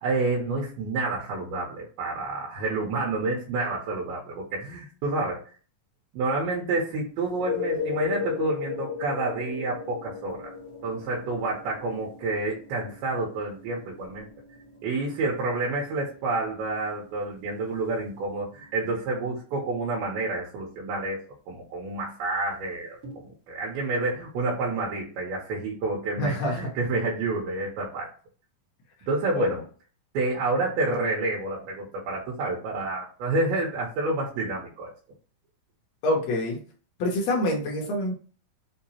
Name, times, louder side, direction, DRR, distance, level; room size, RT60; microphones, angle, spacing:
voice 1, 0.0-5.4 6.1-10.5 10.8-14.3 14.8-21.2 21.5-28.1 29.1-29.6 30.1-34.9, right 3 dB, 85° right, -3 dB, 2.8 m, -29 dB
sound 1, 7.2-18.8 23.0-23.1, left 7 dB, 55° right, 1.0 m, -37 dB
voice 2, 26.2-26.7 29.3-29.5 36.0-36.6 37.0-38.1, left 1 dB, 75° left, -1 dB, 1.6 m, -26 dB
5.8 x 2.8 x 2.8 m, 0.40 s
omnidirectional pair, 4.3 m